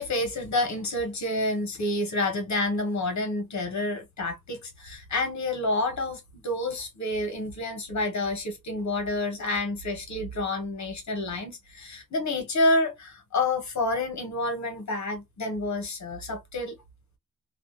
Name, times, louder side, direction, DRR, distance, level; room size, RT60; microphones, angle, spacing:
voice 1, 0.0-16.7, left 2 dB, 50° left, 0.9 m, -29 dB
2.4 x 2.1 x 2.4 m
wide cardioid pair, 165°, 35 cm